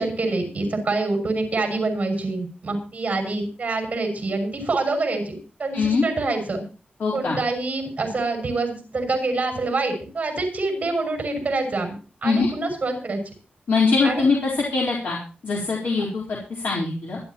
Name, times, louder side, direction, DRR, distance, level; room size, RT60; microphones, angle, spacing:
voice 1, 0.0-6.6 7.1-12.0 12.2-13.2 14.0-14.3, right 3 dB, 35° right, 4 dB, 6.3 m, -26 dB
voice 2, 7.0-7.4 12.2-12.5 13.7-15.2 15.4-16.4 16.6-17.2, left 4 dB, 85° left, -3 dB, 4.1 m, -22 dB
26.0 x 11.5 x 3.0 m, 0.37 s
wide cardioid pair, 175°, 3 cm